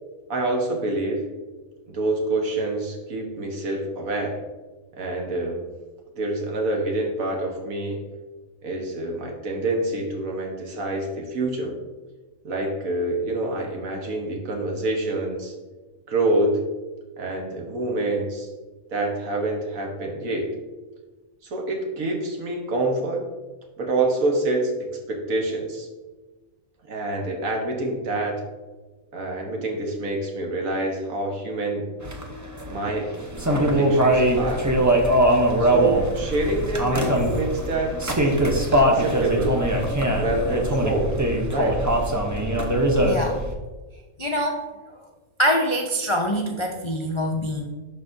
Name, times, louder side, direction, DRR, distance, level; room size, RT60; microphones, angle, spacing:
voice 1, 0.3-1.3 1.9-4.4 5.0-5.6 6.2-8.0 8.6-11.7 12.4-15.5 16.1-16.6 17.2-18.5 18.9-20.6 21.4-23.2 23.8-25.9 26.9-28.4 29.1-31.9 32.7-33.1 33.5-34.7 35.6-37.9 38.2-39.6 40.1-41.2 41.5-41.8, right 2 dB, 75° right, 1 dB, 1.6 m, -26 dB
sound 1, 32.0-43.5, right 1 dB, 20° right, 0.5 m, -22 dB
voice 2, 43.0-43.4 44.2-44.6 44.9-45.0 45.4-47.7, equal, 55° left, 1 dB, 0.3 m, -24 dB
11.5 x 4.1 x 2.6 m, 1.3 s
omnidirectional pair, 1.4 m